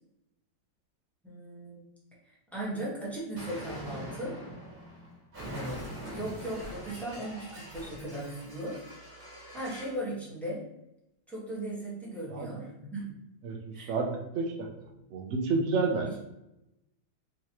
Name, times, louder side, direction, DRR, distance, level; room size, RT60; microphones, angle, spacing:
voice 1, 1.2-1.8 2.3-4.4 5.4-8.8 9.5-10.7 11.3-13.1 13.7-13.9 16.0-16.2, right 1 dB, ahead, -7 dB, 0.9 m, -37 dB
Explosion, 3.3-10.0, right 1 dB, 35° right, 1.4 m, -43 dB
voice 2, 13.4-14.5 14.8-16.1, right 4 dB, 85° right, 1 dB, 0.6 m, -30 dB
3.7 x 3.1 x 2.9 m, 0.88 s
omnidirectional pair, 2.0 m